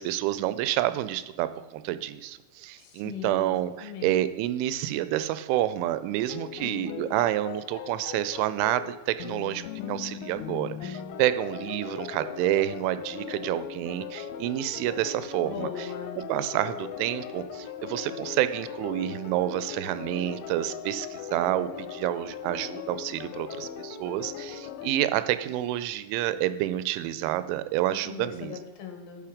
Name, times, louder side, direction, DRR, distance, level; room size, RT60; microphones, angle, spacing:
voice 1, 0.0-15.9 16.3-28.6, right 13 dB, 85° right, 13 dB, 2.9 m, -29 dB
voice 2, 2.8-4.2 15.4-16.2 27.9-29.3, left 7 dB, 65° left, 3 dB, 2.4 m, -39 dB
sound 1, 6.3-24.9, left 8 dB, 85° left, 2.9 m, -39 dB
11.5 x 4.5 x 5.0 m, 1.1 s
omnidirectional pair, 5.4 m